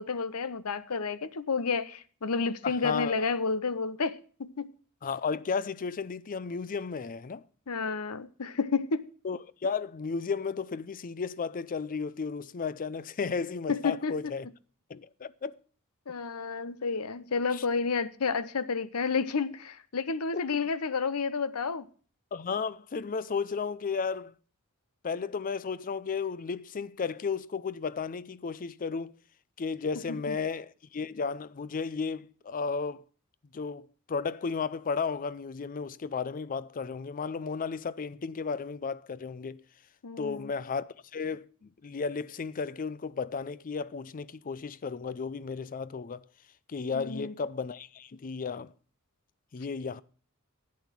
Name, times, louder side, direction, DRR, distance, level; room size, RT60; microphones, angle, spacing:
voice 1, 0.0-4.7 7.7-9.1 13.7-14.3 16.1-21.9 30.1-30.4 40.0-40.5 46.9-47.3, left 4 dB, 80° left, 0.8 m, -31 dB
voice 2, 2.6-3.3 5.0-7.4 9.2-14.5 14.9-15.6 17.5-17.6 20.3-20.4 22.3-24.3 25.0-29.1 29.6-33.0 33.5-39.6 40.2-46.2 46.7-48.7 49.5-50.0, left 5 dB, 40° left, 0.5 m, -34 dB
12.0 x 8.7 x 6.0 m
head